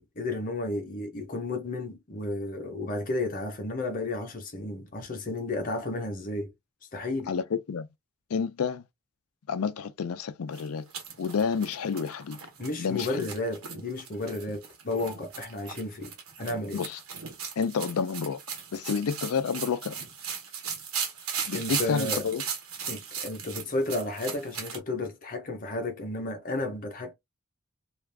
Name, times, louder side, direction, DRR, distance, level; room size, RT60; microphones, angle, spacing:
voice 1, 0.0-6.5 6.9-7.4 12.6-16.1 16.4-16.8 21.5-22.2 22.9-27.1, left 2 dB, 40° left, 0.8 m, -32 dB
voice 2, 7.3-7.9 8.3-8.8 9.5-10.9 11.2-12.4 12.8-13.3 16.7-17.0 17.6-20.0 21.5-22.4, left 6 dB, 85° left, 0.4 m, -30 dB
sound 1, 10.5-24.8, right 6 dB, 75° right, 1.0 m, -37 dB
2.4 x 2.4 x 3.3 m
head